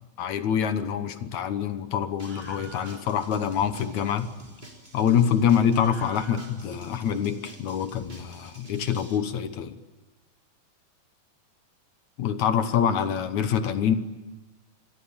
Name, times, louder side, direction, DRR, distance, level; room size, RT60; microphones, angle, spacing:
voice 1, 0.2-4.3 4.9-9.8 12.2-14.0, left 8 dB, 65° left, 10 dB, 2.3 m, -25 dB
Screaming, 2.2-9.2, right 2 dB, 15° right, 3.5 m, -45 dB
27.5 x 21.5 x 8.8 m, 1.1 s
omnidirectional pair, 4.0 m